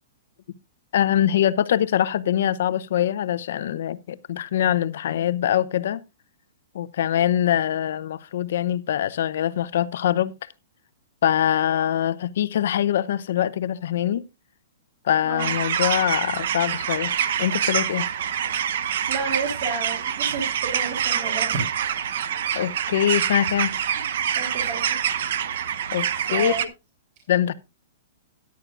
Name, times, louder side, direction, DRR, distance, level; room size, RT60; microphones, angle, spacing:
voice 1, 0.9-6.0 6.7-10.3 11.2-14.3 15.0-17.1 17.4-18.1 22.5-23.7 25.9-26.6 27.3-27.5, left 11 dB, 65° left, 0.7 m, -23 dB
sound 1, 15.4-26.6, right 9 dB, 60° right, 0.9 m, -26 dB
voice 2, 19.1-21.7 24.0-24.1 24.3-25.0 26.3-26.6, right 4 dB, 35° right, 3.4 m, -31 dB
14.0 x 10.5 x 2.5 m
hypercardioid pair, 165°, 0 cm